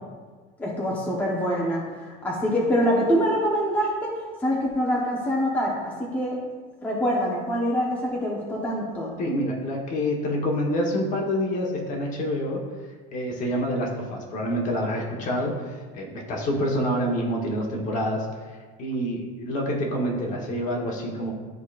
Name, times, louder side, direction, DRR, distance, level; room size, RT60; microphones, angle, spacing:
voice 1, 0.6-4.1 4.4-6.4 6.8-9.1, equal, 10° left, -4 dB, 0.9 m, -25 dB
voice 2, 9.2-12.6 13.1-21.3, equal, 40° left, 0 dB, 1.2 m, -27 dB
12.0 x 4.0 x 2.5 m, 1.5 s
cardioid pair, 165°, 21 cm